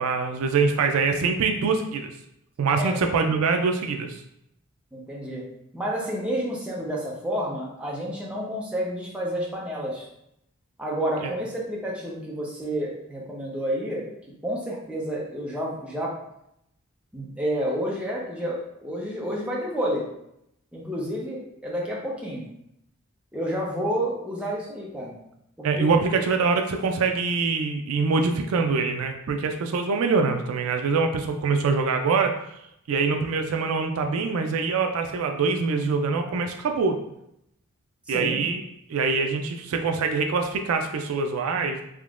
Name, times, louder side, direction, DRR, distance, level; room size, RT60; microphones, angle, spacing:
voice 1, 0.0-2.1 2.6-4.2 11.2-11.3 25.6-32.3 32.9-37.0 38.1-38.6 38.9-41.8, right 4 dB, 70° right, 5 dB, 0.3 m, -24 dB
voice 2, 4.9-5.4 5.7-10.1 10.8-14.0 14.4-16.1 17.1-20.0 20.7-22.4 23.3-25.2 25.6-25.9 38.1-38.4, equal, 5° right, -4 dB, 0.6 m, -30 dB
3.6 x 2.9 x 2.4 m, 0.78 s
head